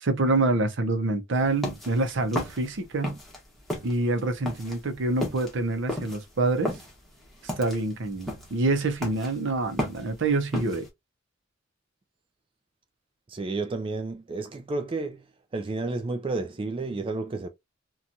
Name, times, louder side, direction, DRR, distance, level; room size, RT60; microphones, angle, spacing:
voice 1, 0.0-3.2 3.8-6.7 7.6-10.9, right 2 dB, 65° right, 0.6 m, -26 dB
sound 1, 1.4-3.4 3.7-10.9, left 1 dB, ahead, 1.0 m, -34 dB
voice 2, 13.3-15.2 15.5-17.5, right 3 dB, 25° right, 0.4 m, -31 dB
2.9 x 2.3 x 2.6 m
head